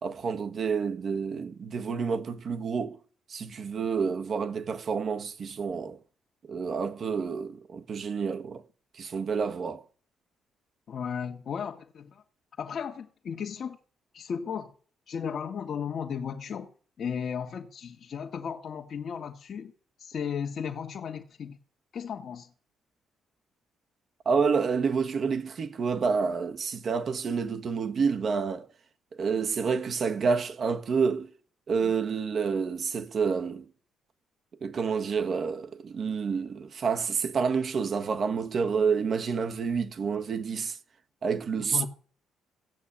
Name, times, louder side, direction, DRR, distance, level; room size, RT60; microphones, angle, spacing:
voice 1, 0.0-3.0 3.3-6.0 6.4-8.6 8.9-9.8 24.2-28.7 29.2-31.3 31.7-33.6 34.6-40.8 41.2-41.9, right 5 dB, 50° right, 1.4 m, -29 dB
voice 2, 10.9-12.2 12.6-13.8 14.1-14.7 15.1-16.7 17.0-19.7 20.0-21.6 21.9-22.5 31.8-31.9 41.7-41.9, left 7 dB, 55° left, 1.5 m, -35 dB
15.5 x 6.5 x 8.7 m
cardioid pair, 90°, 0 cm